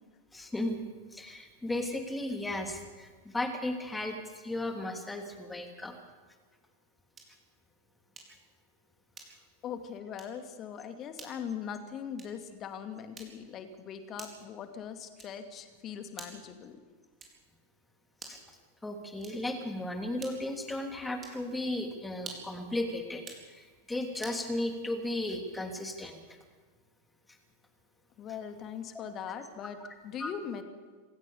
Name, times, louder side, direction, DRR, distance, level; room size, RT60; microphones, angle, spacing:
voice 1, 0.3-0.8 1.1-5.9 18.3-18.4 18.8-26.2 30.2-30.3, left 1 dB, 10° left, 4 dB, 3.1 m, -35 dB
sound 1, 7.1-7.5 8.1-8.5 9.1-9.6 10.1-10.4 11.1-11.4 12.1-12.5 13.1-13.6 14.2-14.5 15.2-15.5 16.1-16.5 17.2-17.5 18.1-18.5 19.2-19.6 20.2-20.6 21.2-21.5 22.1-22.6 23.1-23.5 24.2-24.5, right 4 dB, 20° right, 4.4 m, -48 dB
voice 2, 9.6-16.8 28.2-29.8 30.0-30.6, left 8 dB, 30° left, 8 dB, 2.4 m, -40 dB
26.5 x 15.5 x 6.9 m, 1.4 s
figure-of-eight pair, 90°, 0 cm